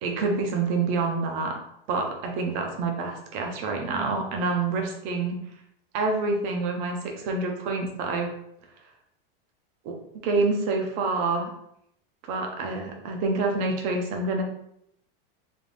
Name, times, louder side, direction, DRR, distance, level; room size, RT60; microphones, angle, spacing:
voice 1, 0.0-1.6 1.9-5.4 5.9-8.3 9.8-9.9 10.2-11.5 12.3-14.4, right 3 dB, 25° right, 2 dB, 0.5 m, -27 dB
3.4 x 2.5 x 3.8 m, 0.73 s
supercardioid pair, 175°, 30 cm